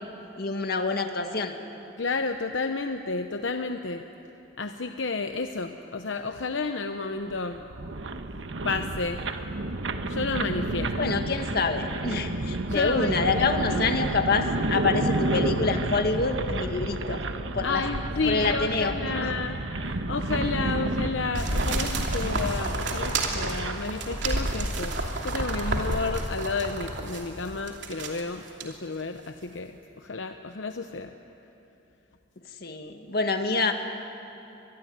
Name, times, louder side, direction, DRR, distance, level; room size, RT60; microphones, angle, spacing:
voice 1, 0.4-1.6 11.0-17.2 17.5-17.8 18.2-19.3 32.6-33.7, left 3 dB, 55° left, 5 dB, 2.0 m, -27 dB
voice 2, 2.0-4.0 4.6-7.6 8.6-9.3 10.1-11.1 12.7-13.8 17.6-31.1, left 4 dB, 80° left, 6 dB, 0.9 m, -31 dB
sound 1, 7.2-23.9, right 2 dB, 90° right, 1.3 m, -31 dB
sound 2, 21.4-27.2 27.7-28.2 28.6-28.7, right 2 dB, 70° right, 2.9 m, -29 dB
25.0 x 21.0 x 9.5 m, 2.9 s
head